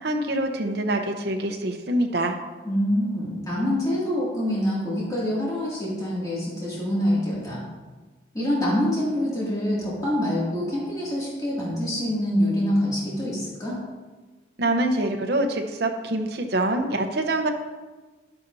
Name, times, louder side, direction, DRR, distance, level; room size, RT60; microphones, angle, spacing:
voice 1, 0.0-2.4 14.6-17.5, right 1 dB, 60° right, 4 dB, 0.9 m, -25 dB
voice 2, 2.6-7.6 8.3-13.8, equal, 20° left, -8 dB, 2.5 m, -25 dB
11.5 x 8.3 x 2.7 m, 1.3 s
head